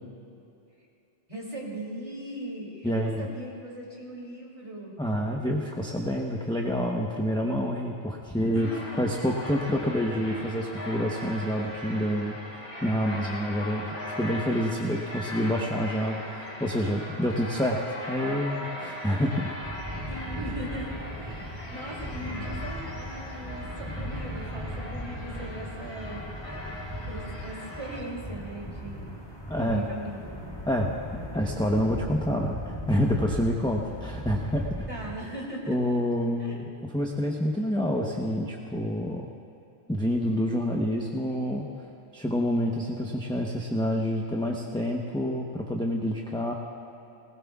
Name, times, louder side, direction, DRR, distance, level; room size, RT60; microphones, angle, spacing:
voice 1, 1.3-5.0 8.5-9.0 20.1-26.6 27.0-29.2 29.6-30.4 34.9-36.0 36.4-36.6, right 1 dB, 30° right, -4 dB, 3.0 m, -39 dB
voice 2, 2.8-3.3 5.0-8.7 9.0-12.4 12.8-19.6 29.5-29.8 30.7-30.9 31.3-34.9 35.7-36.7 36.9-39.3 39.9-41.7 42.1-46.5, equal, 5° left, -1 dB, 0.9 m, -28 dB
sound 1, 8.5-28.0, left 1 dB, 90° left, 2.8 m, -39 dB
sound 2, 19.6-35.1, equal, 25° left, 2.0 m, -37 dB
20.0 x 19.0 x 2.4 m, 2.8 s
omnidirectional pair, 1.1 m